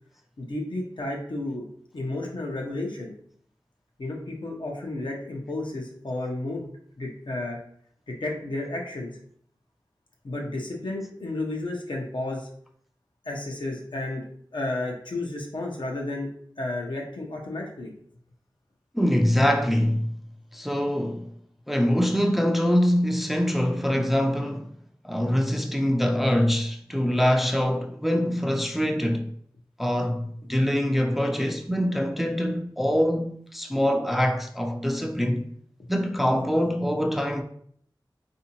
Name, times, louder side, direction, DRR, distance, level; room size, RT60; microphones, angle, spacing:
voice 1, 0.4-1.7 1.9-3.1 4.0-6.7 7.0-7.6 8.1-9.1 10.2-12.5 13.2-16.3 16.6-17.9 35.8-35.9, left 2 dB, 70° left, 0.8 m, -32 dB
voice 2, 18.9-20.1 20.5-21.3 21.7-24.7 25.0-29.3 29.8-35.5 35.9-37.4, equal, ahead, 0.4 m, -24 dB
3.5 x 2.7 x 2.9 m
wide cardioid pair, 45°, 8 cm